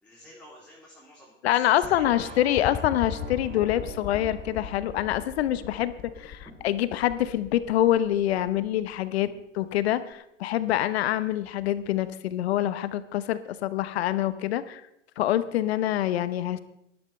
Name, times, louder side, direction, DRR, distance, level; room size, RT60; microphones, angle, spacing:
voice 1, 0.0-2.8 6.5-6.6 9.2-9.3, left 1 dB, 5° left, -6 dB, 3.0 m, -50 dB
voice 2, 1.4-5.9 6.2-9.3 9.6-14.8 15.2-16.6, left 13 dB, 55° left, 13 dB, 1.0 m, -26 dB
sound 1, 1.8-9.0 10.1-10.2, left 10 dB, 20° left, 0.7 m, -39 dB
sound 2, 2.0-8.0, right 6 dB, 20° right, 1.6 m, -46 dB
19.0 x 12.0 x 3.3 m, 0.82 s
hypercardioid pair, 120°, 38 cm